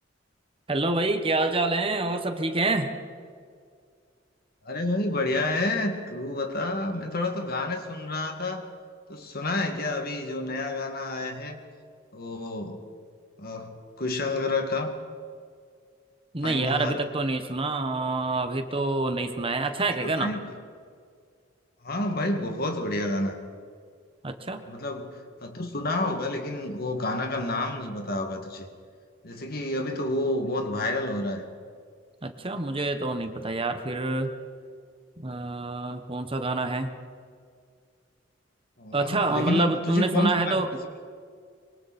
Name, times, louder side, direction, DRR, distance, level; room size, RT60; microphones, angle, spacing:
voice 1, 0.7-2.9 16.3-20.3 24.2-24.6 32.2-34.3 35.2-36.9 38.9-40.7, right 2 dB, 30° right, 7 dB, 1.3 m, -27 dB
voice 2, 4.6-8.7 9.1-11.6 12.1-12.8 13.4-14.9 16.4-17.1 20.0-20.6 21.8-23.4 24.7-28.7 29.2-31.4 38.8-40.7, left 2 dB, 55° left, 5 dB, 2.2 m, -29 dB
25.5 x 23.5 x 4.3 m, 2.1 s
head